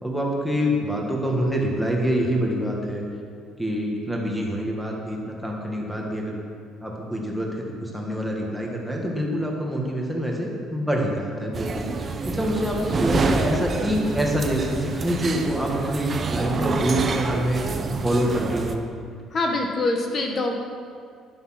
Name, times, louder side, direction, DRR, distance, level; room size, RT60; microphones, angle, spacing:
voice 1, 0.0-3.0 3.6-6.4 6.8-11.9 12.3-17.6 18.0-18.8, equal, ahead, -2 dB, 1.9 m, -26 dB
sound 1, 11.5-18.8, right 3 dB, 25° right, 0.8 m, -27 dB
voice 2, 19.3-20.5, left 2 dB, 35° left, 2 dB, 1.5 m, -24 dB
11.0 x 11.0 x 6.0 m, 2.2 s
cardioid pair, 155°, 0 cm